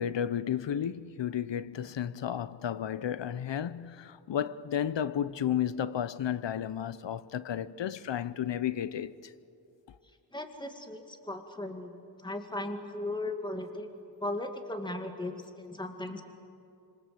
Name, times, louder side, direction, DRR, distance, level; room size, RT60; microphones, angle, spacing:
voice 1, 0.0-9.3, left 9 dB, 85° left, 0.8 m, -33 dB
voice 2, 10.3-13.9 14.2-16.2, left 2 dB, 10° left, 2.2 m, -37 dB
26.5 x 26.5 x 7.8 m
wide cardioid pair, 110°, 42 cm